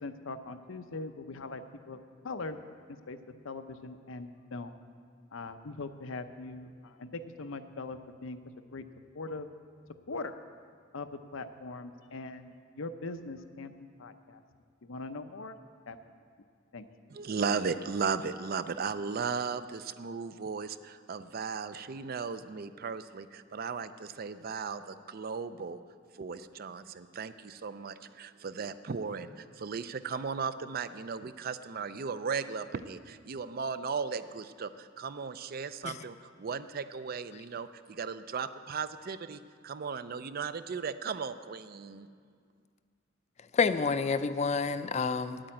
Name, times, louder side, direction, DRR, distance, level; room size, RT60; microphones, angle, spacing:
voice 1, 0.0-2.6 2.9-3.2 3.4-4.8 5.3-8.4 8.7-8.9 9.1-9.5 10.1-10.4 10.9-13.7 14.0-14.4 14.8-15.6 15.9-16.0 16.7-16.8 17.2-17.4, left 3 dB, 85° left, 9 dB, 0.7 m, -41 dB
voice 2, 17.1-25.8 26.1-42.1, right 5 dB, 50° right, 13 dB, 0.4 m, -36 dB
voice 3, 43.5-45.5, left 5 dB, 35° left, 12 dB, 0.4 m, -28 dB
9.4 x 8.8 x 8.9 m, 2.1 s
head